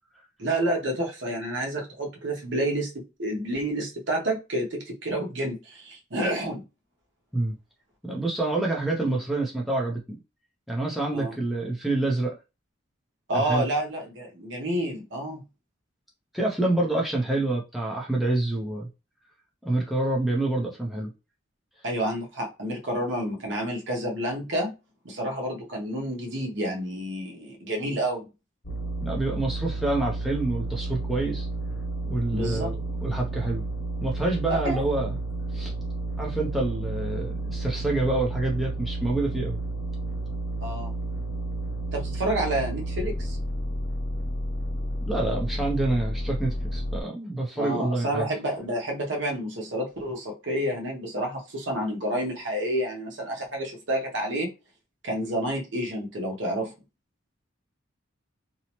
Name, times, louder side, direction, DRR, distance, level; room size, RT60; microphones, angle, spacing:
voice 1, 0.4-6.6 11.1-11.3 13.3-15.4 21.8-24.7 25.0-28.3 32.3-32.7 34.5-34.8 40.6-40.9 41.9-43.4 47.5-54.5 55.0-56.7, right 1 dB, 60° right, 0.8 m, -29 dB
voice 2, 8.0-10.0 10.7-12.4 13.3-13.6 16.3-18.9 19.6-21.1 29.0-31.5 32.1-33.6 34.0-35.1 35.5-35.7 36.2-39.6 45.0-48.3, right 2 dB, ahead, 0.4 m, -27 dB
sound 1, 28.6-47.0, right 2 dB, 80° left, 1.0 m, -31 dB
2.8 x 2.0 x 2.9 m
head